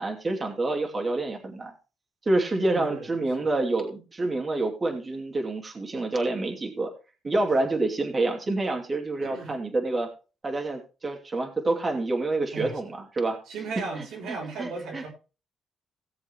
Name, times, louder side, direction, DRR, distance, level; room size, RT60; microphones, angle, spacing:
voice 1, 0.0-1.7 2.3-6.9 7.2-10.1 10.4-13.4 14.3-15.0, right 2 dB, 30° right, 2 dB, 2.7 m, -27 dB
voice 2, 2.7-3.5 9.2-9.5 12.5-12.7 13.5-15.1, right 4 dB, 80° right, -1 dB, 4.2 m, -36 dB
18.0 x 7.2 x 3.1 m, 0.33 s
cardioid pair, 90°, 0 cm